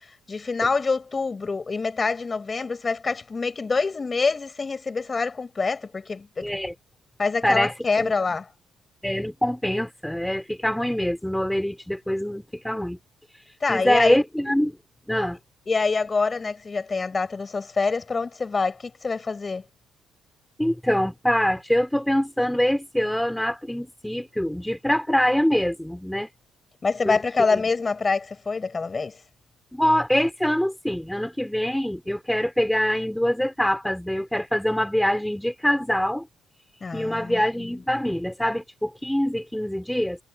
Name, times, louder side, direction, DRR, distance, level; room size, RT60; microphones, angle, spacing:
voice 1, 0.3-6.5 7.2-8.5 13.6-14.2 15.7-19.6 26.8-29.1 36.8-37.7, left 4 dB, 30° left, 7.7 m, -26 dB
voice 2, 6.4-6.7 7.4-8.4 9.0-13.0 13.7-14.8 15.1-15.4 20.6-26.3 27.0-27.2 27.5-27.6 29.7-36.3 36.9-40.2, equal, 5° left, 4.7 m, -24 dB
cardioid pair, 100°, 0 cm